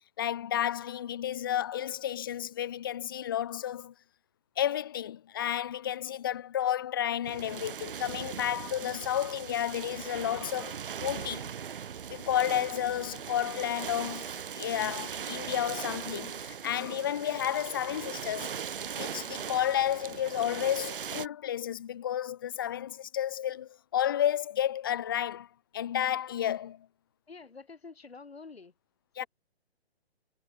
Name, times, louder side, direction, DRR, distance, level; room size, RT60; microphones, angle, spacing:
voice 1, 0.2-3.9 4.6-11.5 12.1-18.5 19.0-25.5 25.7-26.9 29.2-29.3, left 11 dB, 20° left, 0.5 m, -31 dB
sound 1, 7.2-21.3, right 7 dB, 55° right, 0.7 m, -39 dB
voice 2, 27.3-28.7 29.2-29.3, left 4 dB, 70° left, 3.7 m, -47 dB
figure-of-eight pair, 140°, 32 cm